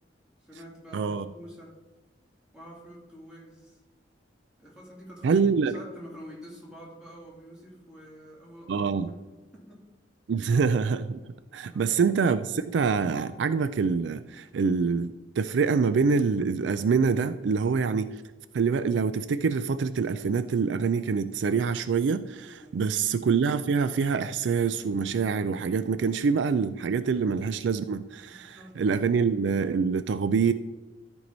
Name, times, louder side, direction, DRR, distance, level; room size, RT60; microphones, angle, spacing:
voice 1, 0.4-1.8 2.5-3.8 4.6-5.5 5.7-9.1 9.5-9.9 10.4-10.5 11.7-12.0 22.6-23.0 28.3-28.8, equal, 5° right, -5 dB, 2.7 m, -47 dB
voice 2, 0.9-1.3 5.2-5.7 8.7-9.1 10.3-11.2 11.5-18.2 18.5-30.5, right 5 dB, 70° right, 12 dB, 0.4 m, -25 dB
13.5 x 4.6 x 4.0 m, 1.2 s
head